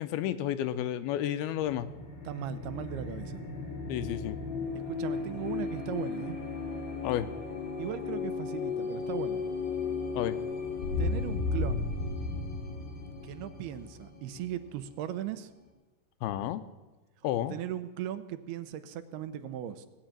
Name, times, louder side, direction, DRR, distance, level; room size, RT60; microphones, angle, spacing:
voice 1, 0.0-1.9 3.9-4.4 7.0-7.3 10.1-10.4 16.2-16.6 17.2-17.6, left 11 dB, 80° left, 12 dB, 2.5 m, -31 dB
sound 1, 1.6-15.1, left 4 dB, 50° left, 3.8 m, -35 dB
voice 2, 2.2-3.4 4.9-6.4 7.8-9.4 11.0-11.9 13.2-15.5 17.5-19.9, right 11 dB, 85° right, 11 dB, 2.7 m, -38 dB
18.5 x 7.9 x 8.8 m, 1.2 s
omnidirectional pair, 4.6 m